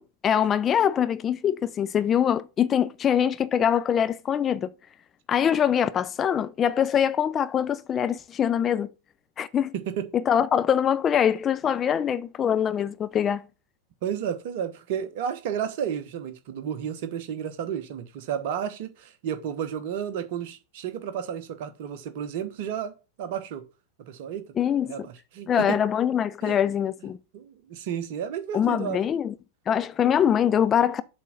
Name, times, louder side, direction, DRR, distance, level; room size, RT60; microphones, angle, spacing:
voice 1, 0.0-4.7 5.3-8.9 9.4-9.7 10.1-13.5 24.6-24.9 25.5-27.2 28.5-29.3 29.7-31.0, left 9 dB, 25° left, 0.4 m, -23 dB
voice 2, 14.0-22.9 23.2-23.6 24.1-24.4 24.8-25.8 26.4-26.6 27.3-29.0, right 8 dB, 50° right, 1.0 m, -32 dB
7.5 x 3.6 x 5.5 m
figure-of-eight pair, 90°, 0 cm